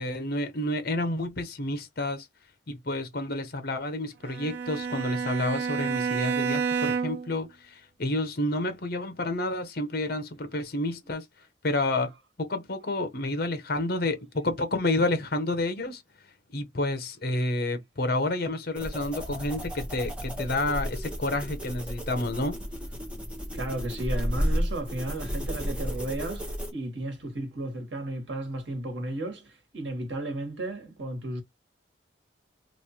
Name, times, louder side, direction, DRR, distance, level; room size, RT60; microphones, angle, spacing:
voice 1, 0.0-2.3 2.7-11.2 11.6-12.1 12.4-16.0 16.5-22.6, left 2 dB, 55° left, 0.8 m, -29 dB
Bowed string instrument, 4.2-7.4, right 6 dB, 60° right, 0.3 m, -29 dB
sound 1, 18.8-26.7, equal, 5° right, 1.0 m, -33 dB
voice 2, 23.5-31.4, right 1 dB, 85° right, 1.4 m, -34 dB
3.2 x 2.5 x 4.2 m
head